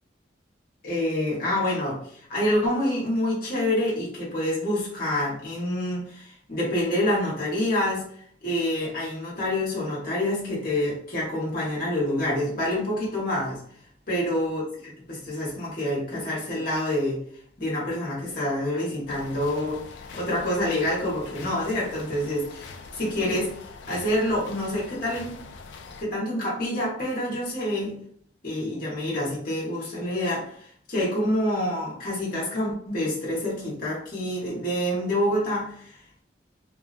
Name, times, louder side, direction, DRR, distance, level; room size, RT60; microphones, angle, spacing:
voice 1, 0.8-13.6 14.1-17.2 17.6-19.8 20.1-25.4 26.0-28.0 28.4-36.2, left 1 dB, 45° left, -6 dB, 1.0 m, -27 dB
sound 1, 19.1-26.0, left 4 dB, 70° left, 0.3 m, -43 dB
2.7 x 2.3 x 2.4 m, 0.63 s
head